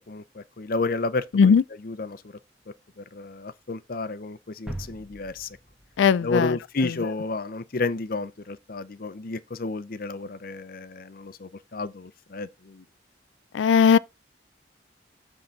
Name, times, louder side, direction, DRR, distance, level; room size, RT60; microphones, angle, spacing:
voice 1, 0.1-1.6 1.8-2.2 3.0-5.5 6.2-12.8, left 3 dB, 50° left, 0.7 m, -31 dB
sound 1, 4.7-7.2, right 1 dB, 5° right, 1.6 m, -41 dB
voice 2, 6.0-6.6 13.5-14.0, left 6 dB, 85° left, 0.4 m, -18 dB
7.9 x 3.7 x 5.7 m
head